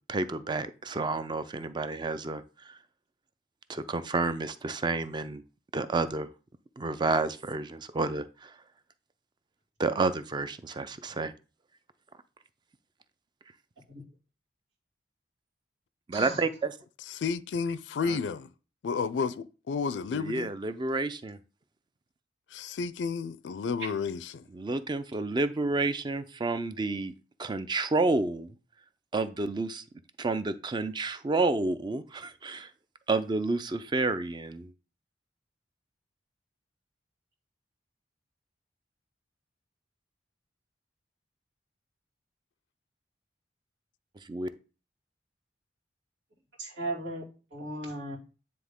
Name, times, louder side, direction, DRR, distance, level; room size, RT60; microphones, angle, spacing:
voice 1, 0.1-2.7 3.7-5.4 5.7-6.3 6.8-8.5 9.8-11.3 16.1-16.7 18.0-18.2 20.1-21.4 24.5-27.1 27.4-28.5 29.1-29.8 30.2-32.7 33.1-34.7 44.3-44.5, right 3 dB, 25° right, 0.4 m, -30 dB
voice 2, 16.1-16.4 46.6-47.3 47.5-48.2, right 1 dB, 85° right, 2.4 m, -36 dB
voice 3, 17.1-18.5 18.8-20.5 22.5-24.4, left 5 dB, 75° left, 0.4 m, -31 dB
9.4 x 3.4 x 3.6 m
head